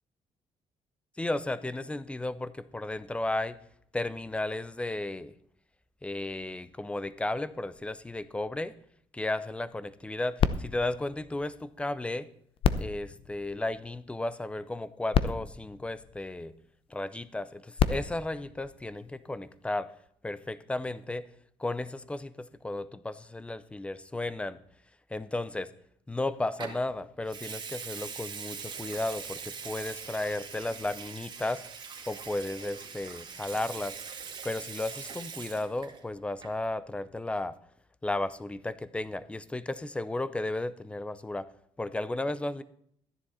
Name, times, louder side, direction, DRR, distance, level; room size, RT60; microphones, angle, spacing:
voice 1, 1.2-3.6 3.9-5.3 6.0-8.8 9.1-12.3 12.8-16.5 16.9-19.9 20.2-21.3 21.6-24.6 25.1-25.7 26.1-31.6 32.1-34.0 34.4-37.5 38.0-41.5 41.8-42.6, left 2 dB, 10° left, 16 dB, 0.7 m, -34 dB
sound 1, 10.4-12.0 12.6-14.2 14.8-14.9 15.1-16.7 17.5-19.4 20.1-20.2, left 7 dB, 55° left, 0.7 m, -32 dB
Water tap faucet / Sink (filling or washing) / Liquid, 26.6-26.8 27.3-36.0 36.3-36.6, right 6 dB, 45° right, 2.3 m, -42 dB
14.0 x 10.5 x 4.2 m, 0.66 s
cardioid pair, 105°, 11 cm